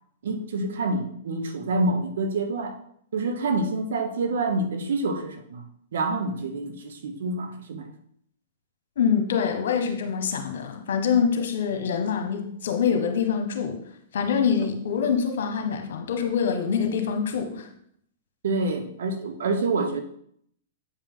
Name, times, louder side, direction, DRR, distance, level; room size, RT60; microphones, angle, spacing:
voice 1, 0.2-2.8 3.1-5.6 5.9-7.9 18.4-20.0, right 2 dB, 70° right, 7 dB, 1.1 m, -27 dB
voice 2, 9.0-13.8 14.1-17.7, left 7 dB, 70° left, 5 dB, 1.4 m, -25 dB
8.1 x 5.2 x 3.9 m, 0.68 s
hypercardioid pair, 115°, 0 cm